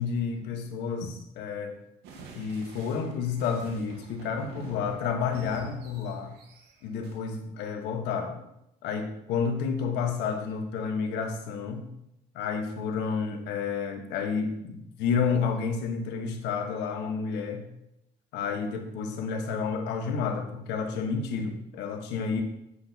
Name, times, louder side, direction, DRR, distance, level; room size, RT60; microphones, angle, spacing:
voice 1, 0.0-1.8 2.3-6.3 6.8-8.4 8.8-11.9 12.3-17.6 18.3-22.4, left 5 dB, 90° left, 4 dB, 1.4 m, -30 dB
sound 1, 2.0-7.2, right 4 dB, 80° right, 1.6 m, -48 dB
9.8 x 7.8 x 2.9 m, 0.81 s
cardioid pair, 110°, 17 cm